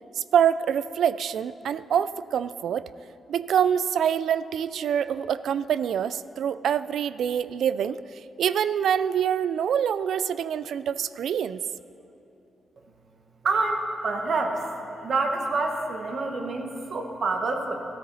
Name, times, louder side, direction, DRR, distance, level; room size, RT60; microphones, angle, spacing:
voice 1, 0.2-2.9 3.3-8.0 8.4-11.6, right 8 dB, 75° right, 16 dB, 0.3 m, -25 dB
voice 2, 13.4-14.7 15.0-17.8, right 3 dB, 50° right, 3 dB, 1.3 m, -27 dB
15.0 x 13.0 x 4.1 m, 2.9 s
wide cardioid pair, 135°, 0 cm